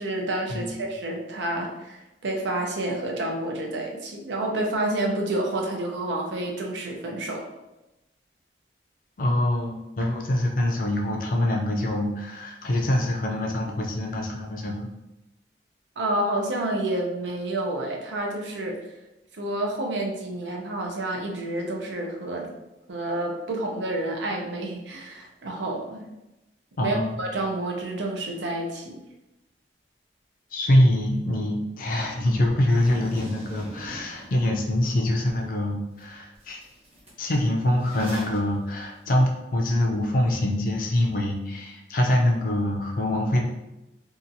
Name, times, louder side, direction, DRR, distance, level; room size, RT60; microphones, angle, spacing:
voice 1, 0.0-7.5 16.0-18.8 19.3-22.5 22.9-26.0 26.8-29.0, right 1 dB, 85° right, 1 dB, 0.6 m, -29 dB
voice 2, 9.2-14.9 26.8-27.2 30.5-36.6 37.2-43.4, left 1 dB, 50° left, 0 dB, 0.5 m, -24 dB
Zipper (clothing), 32.7-34.9 35.4-35.5 36.0-36.1 36.3-38.4, equal, 35° right, 0.8 m, -42 dB
2.8 x 2.4 x 2.6 m, 0.96 s
head